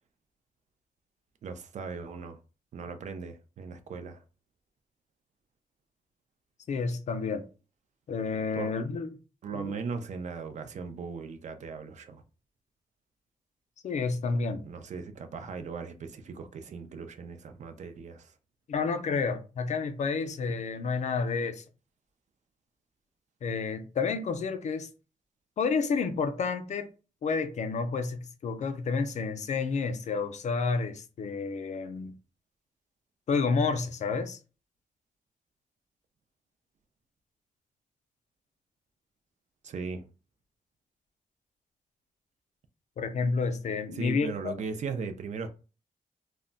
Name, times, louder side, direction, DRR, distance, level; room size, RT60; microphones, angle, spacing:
voice 1, 1.4-2.4 2.7-4.2 8.5-8.7 9.4-12.2 14.6-18.3 39.6-40.1 43.9-45.5, right 5 dB, 55° right, 0.4 m, -38 dB
voice 2, 6.7-7.5 8.1-9.1 9.5-9.7 13.8-14.6 18.7-21.6 23.4-24.9 25.6-26.9 27.2-32.2 33.3-34.4 43.0-44.5, left 4 dB, 55° left, 0.4 m, -30 dB
2.1 x 2.1 x 3.7 m
wide cardioid pair, 150°, 15 cm